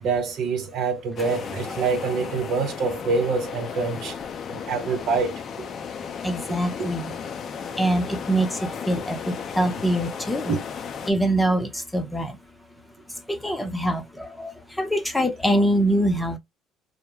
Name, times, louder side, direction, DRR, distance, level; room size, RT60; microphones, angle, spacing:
voice 1, 0.0-4.1 4.5-5.7 6.8-6.9 10.5-10.6, right 4 dB, 65° right, 0.6 m, -26 dB
sound 1, 1.2-11.1, left 7 dB, 50° left, 0.4 m, -35 dB
voice 2, 6.2-7.1 7.8-10.6 11.1-12.4 13.3-14.5 14.8-16.4, right 1 dB, 10° left, 0.7 m, -24 dB
2.2 x 2.1 x 3.0 m
supercardioid pair, 75°, 0 cm